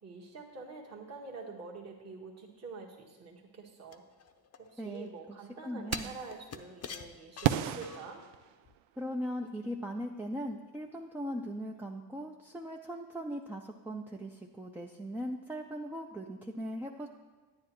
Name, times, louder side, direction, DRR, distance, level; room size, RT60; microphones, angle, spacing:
voice 1, 0.0-4.0 4.6-8.2, right 4 dB, 35° right, -2 dB, 1.4 m, -46 dB
sound 1, 3.9-5.1 5.9-8.3 8.6-8.7, left 6 dB, 35° left, 0.6 m, -46 dB
voice 2, 4.8-5.4 5.6-6.2 9.0-17.1, equal, 5° right, 1 dB, 0.4 m, -39 dB
sound 2, 5.9-6.4 7.4-9.0, right 12 dB, 80° right, 0.6 m, -33 dB
9.9 x 9.6 x 3.0 m, 1.4 s
cardioid pair, 85°, 46 cm